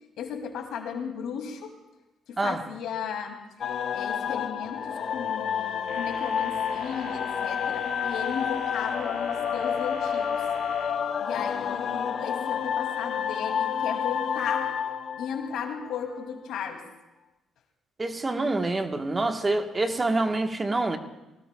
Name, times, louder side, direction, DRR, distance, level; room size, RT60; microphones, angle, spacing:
voice 1, 0.2-1.7 2.3-3.4 3.9-10.3 11.2-14.7 15.2-16.8, left 7 dB, 80° left, 3 dB, 2.4 m, -35 dB
sound 1, 3.6-16.2, left 8 dB, 60° left, 0.7 m, -29 dB
sound 2, 5.9-10.9, right 3 dB, 85° right, 5.5 m, -45 dB
voice 2, 18.0-21.0, right 2 dB, 25° right, 6 dB, 1.2 m, -26 dB
22.0 x 18.5 x 2.3 m, 1.0 s
cardioid pair, 90°, 0 cm